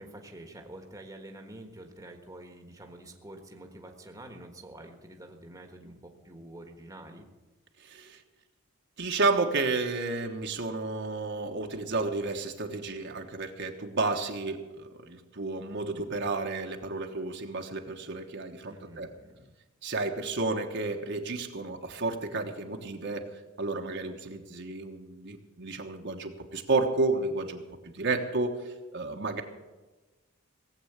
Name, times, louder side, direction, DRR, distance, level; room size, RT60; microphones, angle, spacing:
voice 1, 0.0-7.3 18.7-19.4, right 1 dB, 15° right, 3 dB, 1.4 m, -47 dB
voice 2, 7.8-8.2 9.0-19.1 19.8-23.3 23.6-29.4, right 3 dB, 55° right, 3 dB, 1.3 m, -31 dB
18.0 x 7.9 x 8.0 m, 1.2 s
head